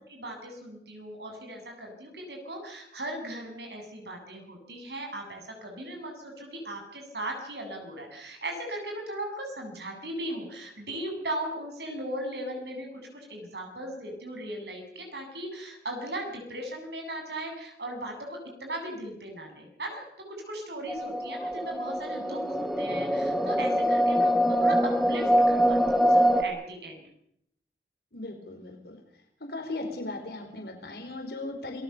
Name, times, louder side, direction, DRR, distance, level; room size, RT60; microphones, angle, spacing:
voice 1, 0.1-12.9 13.1-20.0 20.3-27.0, right 1 dB, 75° right, 3 dB, 7.8 m, -38 dB
sound 1, 20.9-26.4, equal, ahead, 1.4 m, -24 dB
voice 2, 28.1-29.0 29.5-31.8, left 2 dB, 70° left, 4 dB, 4.8 m, -37 dB
28.0 x 19.0 x 7.0 m, 0.74 s
head